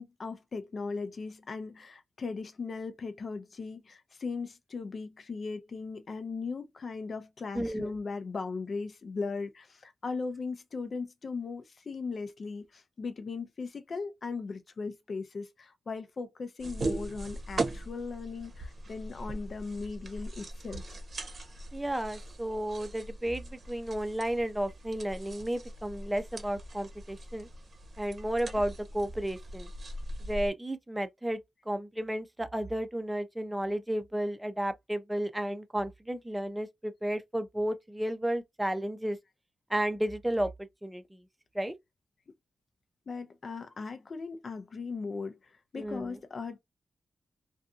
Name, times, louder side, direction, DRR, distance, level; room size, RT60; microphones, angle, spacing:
voice 1, 0.0-20.9 43.1-46.6, left 4 dB, 50° left, 0.5 m, -38 dB
voice 2, 7.5-8.0 21.7-27.5 28.0-29.7 30.3-31.4 31.7-39.2 39.7-41.2 41.5-41.7 45.7-46.2, right 1 dB, 10° right, 0.6 m, -33 dB
sound 1, 16.6-30.5, right 2 dB, 50° right, 0.8 m, -40 dB
2.6 x 2.3 x 2.5 m
wide cardioid pair, 100°, 0 cm